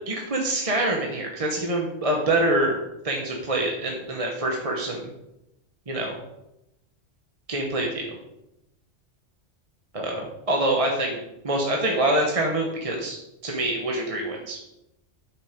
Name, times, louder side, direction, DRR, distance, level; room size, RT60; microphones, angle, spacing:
voice 1, 0.1-2.8 3.0-5.1 5.9-6.2 7.5-8.2 9.9-14.6, right 1 dB, 30° right, 0 dB, 1.3 m, -25 dB
8.8 x 6.7 x 5.1 m, 0.88 s
omnidirectional pair, 1.2 m